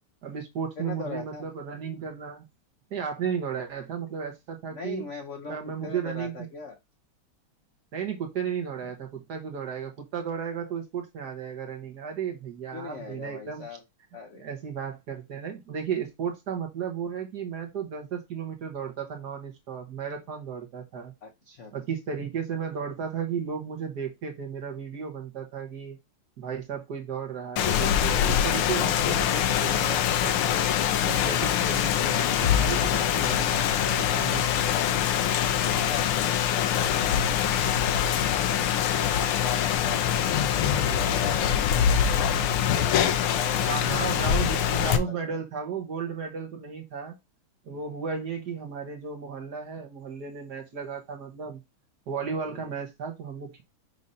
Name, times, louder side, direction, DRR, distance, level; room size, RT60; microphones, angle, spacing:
voice 1, 0.2-2.5 2.9-5.0 5.5-6.3 7.9-13.6 14.4-21.1 21.7-26.0 26.4-30.7 31.1-34.5 43.6-47.2 47.6-51.6 52.1-53.6, right 7 dB, 55° right, 3 dB, 1.5 m, -34 dB
voice 2, 0.8-1.4 4.7-5.6 5.8-6.8 12.7-13.8 14.1-14.5 21.2-21.7 35.5-37.4 39.1-42.5 43.0-44.3 44.7-45.4 47.7-47.8 52.5-52.7, left 5 dB, 60° left, 4 dB, 0.7 m, -40 dB
Rain, 27.6-45.0, left 9 dB, 80° left, 1.6 m, -24 dB
6.3 x 2.8 x 5.4 m, 0.22 s
omnidirectional pair, 2.4 m